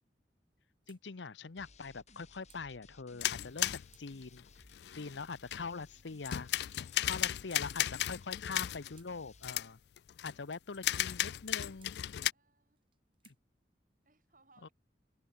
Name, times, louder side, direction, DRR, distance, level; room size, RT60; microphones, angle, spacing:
sound 1, 0.8-1.0 1.9-2.7 3.4-4.1 4.9-5.4 6.2-6.5 7.2-7.7 8.6-9.1 10.0-10.7 11.4-12.0 12.8-13.4, right 9 dB, 30° right, 2.1 m, -67 dB
voice 1, 0.9-4.4 4.9-6.5 7.0-9.8 10.2-11.9 13.2-13.3 14.6-14.7, left 4 dB, 85° left, 0.8 m, -43 dB
sound 2, 1.6-9.6, left 3 dB, 40° left, 6.5 m, -61 dB
sound 3, 3.2-5.8 6.2-9.0 9.4-9.7 10.0-10.3 10.7-12.3, left 13 dB, 65° left, 0.3 m, -35 dB
voice 2, 10.3-11.1 12.3-12.8 14.0-14.7, right 3 dB, 45° right, 5.8 m, -70 dB
head